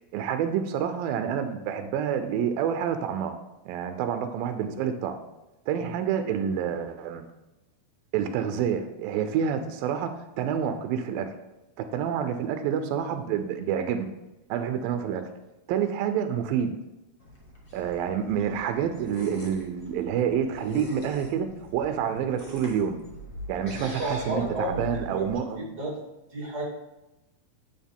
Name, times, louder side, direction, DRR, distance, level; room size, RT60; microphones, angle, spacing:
voice 1, 0.1-5.2 5.7-7.3 8.1-11.4 11.8-14.1 14.5-15.3 15.7-16.7 17.7-21.5 21.7-23.0 23.5-25.7, right 8 dB, 90° right, 8 dB, 2.4 m, -28 dB
sound 1, 17.2-25.3, equal, 50° left, 0.6 m, -42 dB
voice 2, 23.7-25.3 25.6-25.9 26.3-26.7, right 1 dB, 30° right, -3 dB, 2.6 m, -32 dB
9.5 x 7.0 x 3.6 m, 0.98 s
omnidirectional pair, 4.1 m